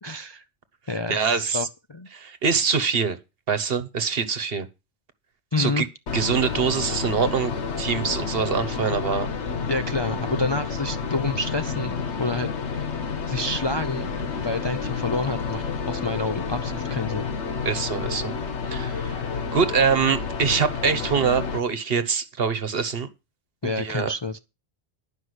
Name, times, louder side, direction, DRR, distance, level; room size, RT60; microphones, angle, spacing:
voice 1, 0.0-0.4 0.9-2.1 5.5-5.8 9.7-12.5 13.3-14.1 14.4-17.3 23.6-24.4, left 2 dB, 35° left, 0.4 m, -28 dB
voice 2, 1.1-1.7 2.1-3.2 3.5-4.7 5.6-5.9 6.1-7.5 7.8-9.3 17.6-18.3 18.6-19.3 19.5-23.1 23.6-24.1, right 6 dB, 60° right, 1.3 m, -24 dB
sound 1, 6.1-21.6, left 5 dB, 80° left, 1.4 m, -30 dB
11.5 x 5.6 x 8.0 m
omnidirectional pair, 1.2 m